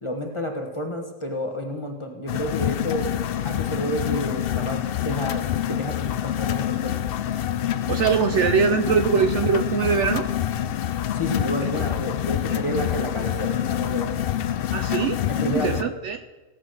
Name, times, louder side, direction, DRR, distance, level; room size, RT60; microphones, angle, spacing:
voice 1, 0.0-3.1 3.4-5.4 5.7-7.1 11.1-14.3 15.3-15.9, equal, 20° left, 3 dB, 1.3 m, -30 dB
sound 1, 2.3-15.8, left 11 dB, 70° left, 0.5 m, -26 dB
voice 2, 7.9-10.3 11.8-12.0 12.5-12.6 14.7-16.2, right 6 dB, 65° right, 9 dB, 0.8 m, -23 dB
16.5 x 6.0 x 7.7 m, 1.2 s
omnidirectional pair, 1.5 m